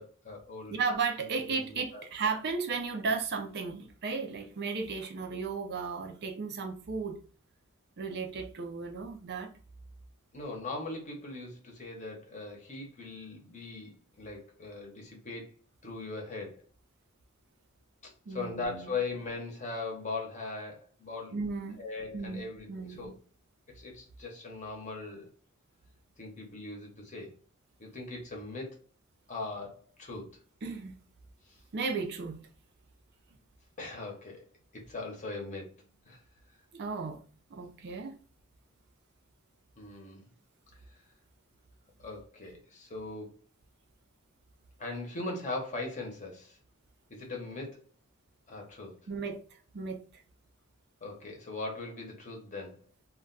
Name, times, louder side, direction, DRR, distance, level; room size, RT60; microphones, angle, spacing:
voice 1, 0.0-0.8 1.5-2.0 10.3-15.5 15.8-16.6 18.0-21.4 21.8-23.1 23.7-25.3 26.2-27.3 27.8-28.8 29.3-30.3 31.5-31.6 33.8-34.4 34.7-35.7 36.1-36.2 39.8-40.3 42.0-43.4 44.8-46.6 47.1-47.8 48.5-49.0 51.0-52.8, left 3 dB, 35° left, 0.7 m, -40 dB
voice 2, 0.7-7.2 8.0-9.5 18.3-18.9 21.3-21.8 22.1-22.4 22.7-23.1 30.6-31.0 31.7-32.4 36.7-37.2 37.5-38.1 49.1-49.4 49.7-50.0, right 4 dB, 50° right, 0.5 m, -34 dB
2.3 x 2.2 x 3.7 m
head